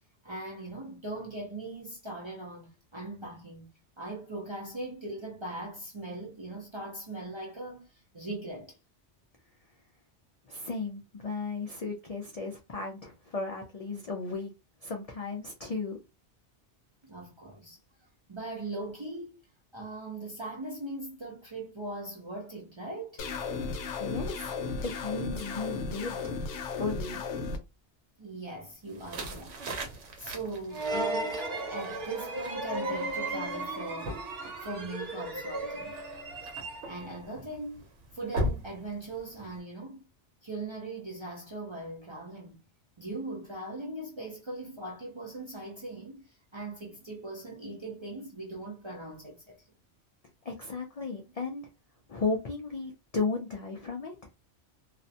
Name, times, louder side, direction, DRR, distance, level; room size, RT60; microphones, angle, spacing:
voice 1, 0.2-3.7 4.0-8.8 17.0-17.8 18.3-19.4 19.7-23.2 28.2-29.6 29.9-31.4 31.7-34.2 34.6-36.1 36.9-37.8 38.1-40.1 40.4-42.6 43.0-49.6, right 2 dB, 40° right, 0.4 m, -40 dB
voice 2, 10.5-14.5 14.8-16.0 24.0-24.5 24.8-27.2 50.4-51.7 52.1-54.2, left 3 dB, 65° left, 0.3 m, -35 dB
sound 1, 23.2-27.6, left 4 dB, 85° left, 0.9 m, -35 dB
sound 2, 28.9-39.6, right 1 dB, 90° right, 1.0 m, -40 dB
sound 3, 30.7-37.2, right 2 dB, 60° right, 0.9 m, -35 dB
2.4 x 2.1 x 2.7 m
omnidirectional pair, 1.2 m